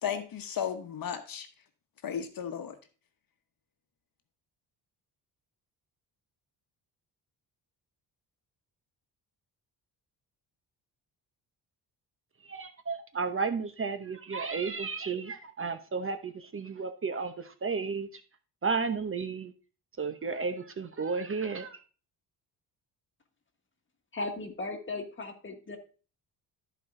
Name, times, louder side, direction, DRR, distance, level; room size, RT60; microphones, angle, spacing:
voice 1, 0.0-1.5 2.0-2.7, left 8 dB, 55° left, 8 dB, 1.2 m, -34 dB
voice 2, 12.5-18.2 18.6-19.5 20.0-21.8, right 5 dB, 30° right, 9 dB, 0.9 m, -33 dB
voice 3, 24.1-25.8, left 2 dB, 30° left, 5 dB, 1.7 m, -37 dB
13.0 x 4.6 x 3.7 m, 0.37 s
cardioid pair, 95°, 41 cm